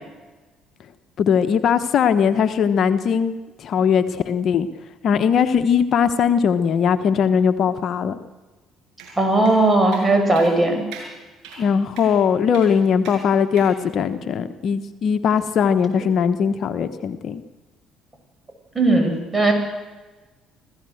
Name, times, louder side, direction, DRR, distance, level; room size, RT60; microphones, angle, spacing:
voice 1, 1.2-4.7 5.0-8.2 11.6-17.4, left 7 dB, 55° left, 10 dB, 1.1 m, -20 dB
sound 1, 9.0-9.2 9.5-9.6 9.9-10.1 10.4-10.5 10.9-11.1 11.4-11.6 12.0-12.1 12.5-12.7 13.0-13.2 13.6-13.7, right 6 dB, 70° right, 6.8 m, -39 dB
voice 2, 9.2-10.9 18.7-19.5, right 2 dB, 25° right, 5 dB, 6.5 m, -17 dB
25.5 x 15.5 x 7.9 m, 1.2 s
hypercardioid pair, 60°, 0 cm